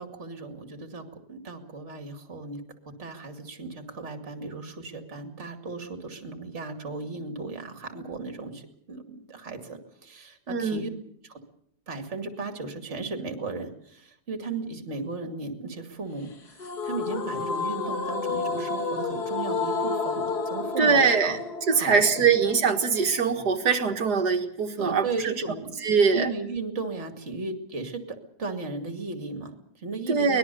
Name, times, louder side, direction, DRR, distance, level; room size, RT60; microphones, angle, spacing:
voice 1, 0.0-10.9 11.2-11.4 11.9-21.4 21.7-22.3 24.8-25.8 26.1-30.4, right 3 dB, 40° right, 6 dB, 2.6 m, -36 dB
voice 2, 10.5-10.9 20.8-21.4 21.7-25.4 25.8-26.3 30.1-30.4, right 5 dB, 70° right, 7 dB, 2.3 m, -22 dB
sound 1, 16.6-23.6, left 4 dB, 65° left, 2.3 m, -31 dB
24.5 x 20.0 x 6.9 m, 0.68 s
omnidirectional pair, 1.8 m